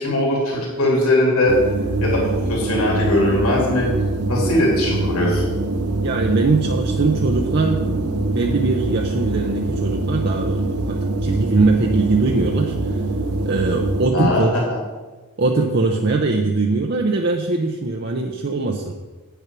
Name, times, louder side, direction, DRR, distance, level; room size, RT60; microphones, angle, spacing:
voice 1, 0.0-1.5 2.0-3.9 4.3-5.5 14.1-14.6, left 1 dB, 75° left, -2 dB, 2.7 m, -20 dB
sound 1, 1.5-14.1, right 2 dB, 90° right, 0.8 m, -23 dB
voice 2, 6.0-12.7 13.4-14.5 15.4-19.0, right 3 dB, 50° right, 1 dB, 0.7 m, -21 dB
8.9 x 6.7 x 6.0 m, 1.3 s
head